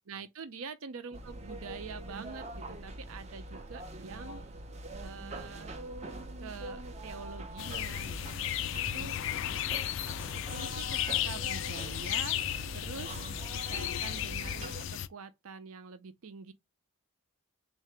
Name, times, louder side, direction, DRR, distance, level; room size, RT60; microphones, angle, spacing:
voice 1, 0.1-4.4 5.0-5.8 6.4-8.6 8.9-9.2 10.0-10.1 10.5-12.4 12.7-13.2 13.7-16.5, right 5 dB, 75° right, 0.6 m, -45 dB
sound 1, 1.1-14.9, right 1 dB, 30° right, 0.5 m, -43 dB
sound 2, 7.6-15.1, left 11 dB, 60° left, 0.3 m, -34 dB
3.7 x 2.6 x 3.3 m
head